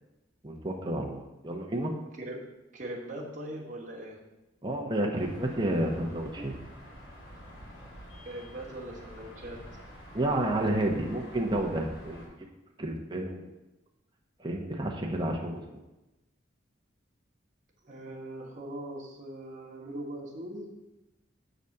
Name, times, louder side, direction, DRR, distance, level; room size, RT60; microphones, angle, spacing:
voice 1, 0.4-1.9 4.6-6.5 10.1-12.3 12.8-13.5 14.4-15.6, right 1 dB, 25° right, 0 dB, 0.9 m, -30 dB
voice 2, 2.7-4.2 6.3-6.6 8.2-9.6 17.8-20.7, right 1 dB, 40° right, -3 dB, 1.3 m, -40 dB
sound 1, 5.2-12.3, equal, 85° left, 2.9 m, -48 dB
7.1 x 4.1 x 6.5 m, 1.0 s
head